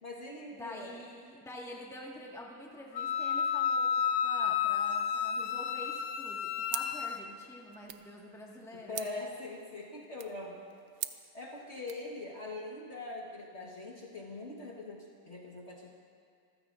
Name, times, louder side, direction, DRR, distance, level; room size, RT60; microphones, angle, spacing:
voice 1, 0.0-1.0 8.7-10.6 11.3-15.9, left 2 dB, 40° left, -2 dB, 1.6 m, -42 dB
voice 2, 0.6-3.9 4.2-9.1, left 1 dB, ahead, -3 dB, 1.5 m, -47 dB
Wind instrument woodwind instrument, 3.0-7.2, left 7 dB, 75° left, 1.2 m, -31 dB
sound 1, 6.7-12.1, right 11 dB, 65° right, 0.9 m, -45 dB
26.5 x 15.0 x 2.6 m, 2.4 s
omnidirectional pair, 1.8 m